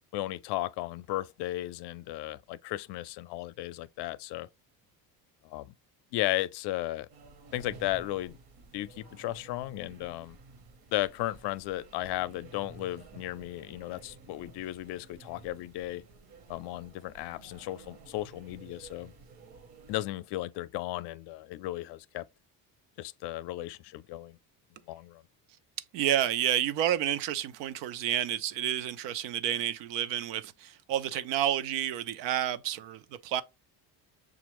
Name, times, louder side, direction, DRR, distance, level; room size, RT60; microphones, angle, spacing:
voice 1, 0.1-4.5 5.4-5.7 6.1-7.1 7.5-8.4 8.7-10.4 10.9-16.0 16.5-19.1 19.9-22.2 23.0-24.4 24.9-25.2, left 16 dB, 65° left, 0.5 m, -35 dB
sound 1, 7.1-20.0, right 4 dB, 55° right, 1.1 m, -53 dB
voice 2, 25.9-33.4, right 11 dB, 80° right, 0.7 m, -30 dB
6.9 x 2.5 x 3.0 m
cardioid pair, 125°, 43 cm